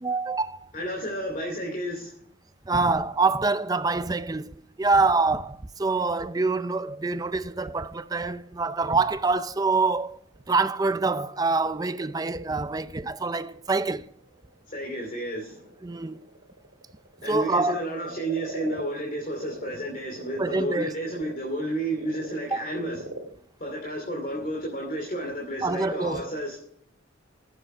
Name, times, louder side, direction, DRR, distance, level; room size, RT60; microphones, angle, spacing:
voice 1, 0.0-0.7 2.7-10.2 10.5-14.1 15.8-16.2 17.3-17.9 20.4-20.9 22.5-22.6 25.6-26.3, right 3 dB, 20° right, 0.4 m, -25 dB
voice 2, 0.7-2.1 14.7-15.6 17.2-23.0 23.6-26.6, right 1 dB, 40° left, 2.5 m, -31 dB
Frog, 7.2-19.7 20.1-24.7, right 1 dB, 65° right, 2.3 m, -45 dB
15.0 x 7.9 x 4.9 m
head